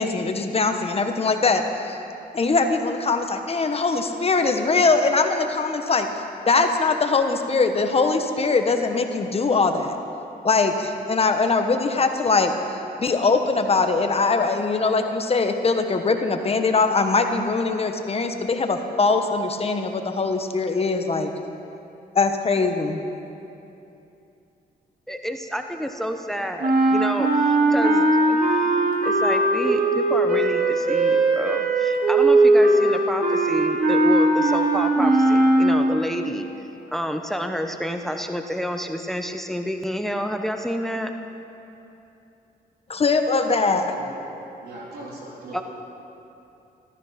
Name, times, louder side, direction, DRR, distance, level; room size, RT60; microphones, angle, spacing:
voice 1, 0.0-2.0 2.3-6.1 6.5-10.0 10.4-12.5 13.0-21.3 22.1-23.0 42.9-43.9, left 4 dB, 40° left, 6 dB, 1.2 m, -22 dB
voice 2, 25.1-28.6 29.0-36.5 36.9-41.1 45.5-45.6, equal, ahead, 6 dB, 0.9 m, -29 dB
sound 1, 26.6-36.1, right 2 dB, 65° right, 2.6 m, -19 dB
voice 3, 43.9-45.6, right 2 dB, 85° right, -4 dB, 3.7 m, -40 dB
14.5 x 14.0 x 5.8 m, 2.8 s
cardioid pair, 85°, 16 cm